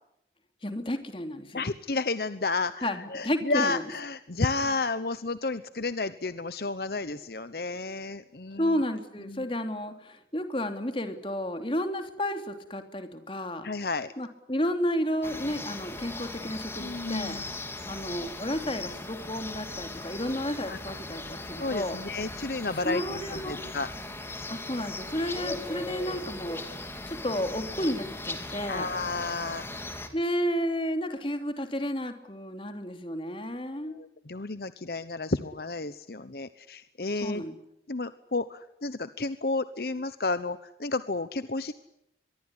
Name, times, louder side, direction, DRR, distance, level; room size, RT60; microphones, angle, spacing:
voice 1, 0.6-1.7 2.8-3.8 8.6-13.7 14.2-17.4 17.8-22.0 22.8-23.6 24.5-28.9 30.1-33.9 37.2-37.5, equal, 30° left, 7 dB, 3.1 m, -32 dB
voice 2, 1.5-8.8 9.2-9.5 13.6-14.1 16.8-17.4 20.7-20.8 21.6-23.9 28.7-29.7 33.8-37.4 37.9-41.7, left 3 dB, 60° left, 13 dB, 1.0 m, -32 dB
sound 1, 15.2-30.1, left 2 dB, 15° left, 2.8 m, -38 dB
24.0 x 23.0 x 10.0 m, 0.81 s
head